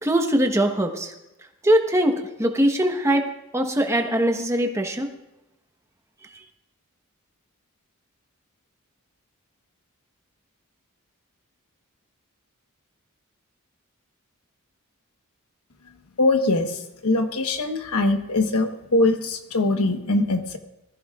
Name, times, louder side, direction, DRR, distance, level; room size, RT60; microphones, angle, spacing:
voice 1, 0.0-1.1 1.6-3.3 3.5-5.1, right 1 dB, 15° right, 5 dB, 1.0 m, -21 dB
voice 2, 16.2-20.6, left 2 dB, 85° left, 6 dB, 1.2 m, -22 dB
20.5 x 14.0 x 2.4 m, 0.94 s
head